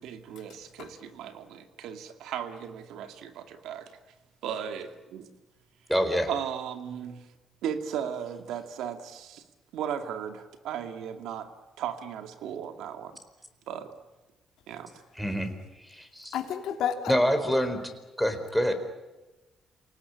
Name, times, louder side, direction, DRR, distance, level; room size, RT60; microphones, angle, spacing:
voice 1, 0.0-4.0 4.4-5.3 6.3-7.3 7.6-9.4 9.7-11.5 11.8-13.2 13.7-13.9 14.7-15.0, right 8 dB, 85° right, 7 dB, 2.3 m, -36 dB
voice 2, 5.9-6.3 15.2-15.5 15.8-16.4 17.1-17.8 18.2-18.7, equal, ahead, 8 dB, 4.4 m, -26 dB
voice 3, 16.3-17.1, left 9 dB, 80° left, 5 dB, 2.8 m, -30 dB
28.0 x 19.0 x 9.9 m, 1.1 s
cardioid pair, 90°, 0 cm